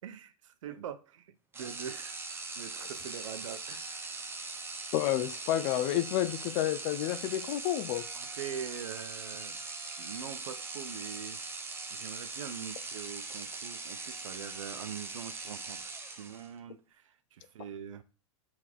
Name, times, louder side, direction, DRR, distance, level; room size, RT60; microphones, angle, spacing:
voice 1, 0.0-2.2 2.6-4.2 8.1-9.6 10.0-11.4 11.9-18.0, right 8 dB, 70° right, 0.9 m, -43 dB
sound 1, 1.5-16.6, right 3 dB, 15° right, 1.0 m, -41 dB
voice 2, 4.9-8.0, left 13 dB, 45° left, 0.7 m, -30 dB
7.4 x 3.8 x 4.6 m
hypercardioid pair, 120°, 17 cm